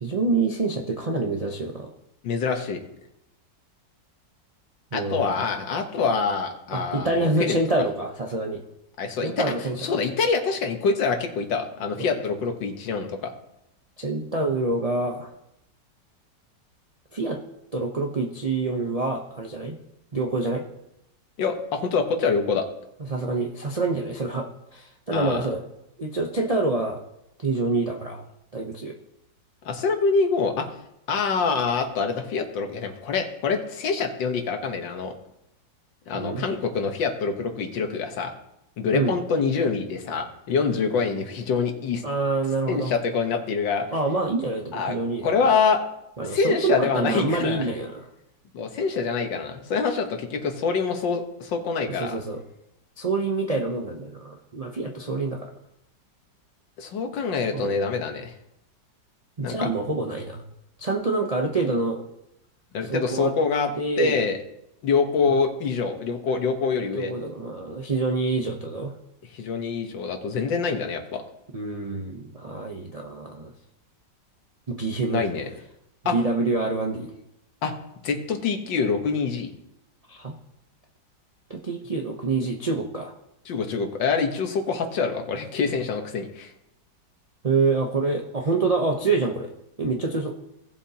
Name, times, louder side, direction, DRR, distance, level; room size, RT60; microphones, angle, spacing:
voice 1, 0.0-1.9 4.9-5.4 6.7-8.6 9.2-9.9 12.0-12.2 14.0-15.3 17.1-17.4 17.7-19.8 20.1-20.6 23.0-25.6 26.0-27.0 27.4-28.2 28.5-29.0 36.1-36.5 38.9-39.1 42.0-42.9 43.9-45.5 46.2-48.1 52.0-52.4 53.0-55.4 57.5-57.7 59.4-60.4 60.8-62.0 62.9-63.3 63.8-64.2 66.9-68.9 71.5-73.5 74.7-75.2 76.1-77.1 80.1-80.4 81.5-83.1 87.4-89.5 89.8-90.3, right 3 dB, 50° right, 0 dB, 0.4 m, -26 dB
voice 2, 2.2-2.8 4.9-7.6 9.0-9.5 9.8-13.3 21.4-22.7 25.1-25.4 29.7-30.7 31.1-35.1 36.1-38.3 38.8-42.0 42.7-43.9 44.7-45.0 45.2-45.8 46.2-47.7 48.5-52.2 56.8-58.3 59.4-59.7 62.7-64.4 64.8-67.1 69.3-71.2 75.1-75.5 76.1-76.2 77.6-77.7 78.0-79.5 83.5-86.5, left 5 dB, 80° left, 5 dB, 1.8 m, -25 dB
17.5 x 7.1 x 2.8 m, 0.84 s
omnidirectional pair, 2.0 m